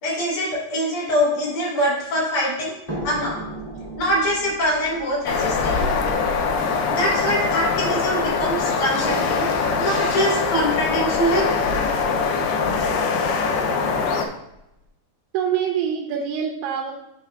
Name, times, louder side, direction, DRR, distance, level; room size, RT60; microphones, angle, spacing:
voice 1, 0.0-2.8 3.0-3.4 4.0-5.9 7.0-9.5 9.8-11.5, equal, 50° left, -6 dB, 3.6 m, -23 dB
sound 1, 2.9-8.1 9.0-13.0 14.0-14.1 14.5-14.6, right 1 dB, 15° left, 1.2 m, -38 dB
sound 2, 5.3-14.3, left 5 dB, 80° left, 2.4 m, -22 dB
voice 2, 15.3-16.9, right 8 dB, 85° right, 1 dB, 2.6 m, -25 dB
10.0 x 5.5 x 2.4 m, 0.87 s
omnidirectional pair, 4.8 m